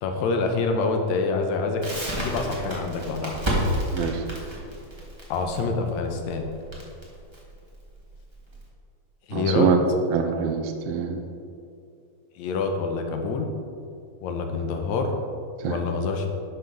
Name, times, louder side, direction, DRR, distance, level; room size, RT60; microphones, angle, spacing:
voice 1, 0.0-1.8 2.2-3.3 5.3-6.5 9.3-9.7 12.4-13.5 14.2-15.2 15.6-16.3, left 4 dB, 80° left, 4 dB, 2.0 m, -26 dB
Crackle, 1.8-8.6, equal, 15° right, 0.9 m, -30 dB
voice 2, 9.3-9.8 10.1-11.3 15.6-15.8, right 7 dB, 75° right, 5 dB, 1.5 m, -24 dB
11.0 x 5.7 x 3.9 m, 2.5 s
omnidirectional pair, 3.3 m